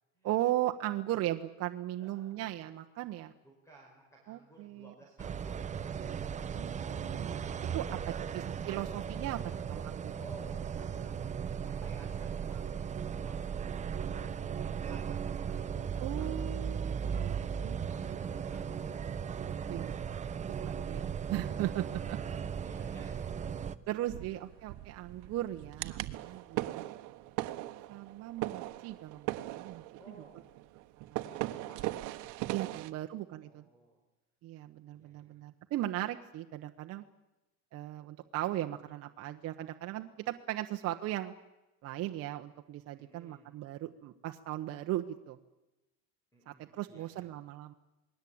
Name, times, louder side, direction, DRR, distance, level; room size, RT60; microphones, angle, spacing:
voice 1, 0.2-3.3 4.3-4.9 5.2-5.3 6.6-7.5 7.7-10.1 16.0-17.4 17.6-17.8 19.7-22.2 23.9-26.8 27.9-29.8 31.0-31.3 32.5-33.6 34.4-37.0 37.7-41.3 41.8-45.4 46.5-47.7, right 14 dB, 50° right, 5 dB, 1.1 m, -37 dB
voice 2, 2.0-2.6 3.4-6.2 10.2-11.2 11.6-16.7 17.2-19.7 22.0-23.3 24.0-24.1 30.0-30.4 31.3-32.2 33.5-34.0 34.9-35.4 43.0-43.6 46.3-47.3, right 2 dB, 10° left, 0 dB, 5.2 m, -57 dB
sound 1, 5.2-23.8, right 7 dB, 25° right, 0.9 m, -37 dB
sound 2, 24.1-32.9, right 17 dB, 70° right, 1.3 m, -39 dB
28.0 x 20.5 x 8.7 m, 1.0 s
cardioid pair, 160°, 31 cm